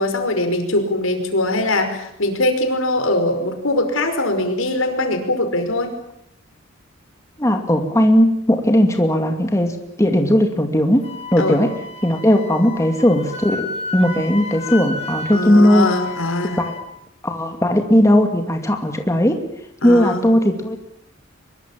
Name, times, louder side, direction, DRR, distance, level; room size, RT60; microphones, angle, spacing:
voice 1, 0.0-5.9 11.4-11.6 15.3-16.6 19.8-20.3, left 1 dB, 85° left, 6 dB, 5.4 m, -21 dB
voice 2, 7.4-11.7 12.0-13.7 13.9-15.9 16.6-16.7 17.2-19.4 19.8-20.8, equal, 15° left, 4 dB, 2.4 m, -17 dB
Wind instrument woodwind instrument, 11.0-16.8, left 2 dB, 30° left, 3.0 m, -32 dB
24.0 x 22.5 x 7.5 m, 0.75 s
head